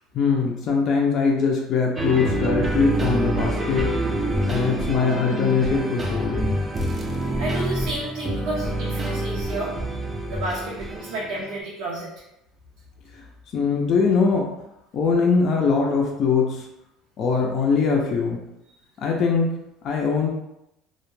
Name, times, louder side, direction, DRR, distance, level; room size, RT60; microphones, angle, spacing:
voice 1, 0.1-3.9 4.5-6.6 13.1-13.2 13.5-14.5 14.9-16.7 17.2-18.4 19.0-19.5 19.8-20.4, left 5 dB, 45° left, 0 dB, 0.4 m, -22 dB
sound 1, 2.0-11.6, right 1 dB, 20° right, 0.4 m, -26 dB
voice 2, 7.4-9.7 10.3-12.1, right 2 dB, 85° right, -5 dB, 0.5 m, -31 dB
2.1 x 2.1 x 3.1 m, 0.85 s
cardioid pair, 130°, 0 cm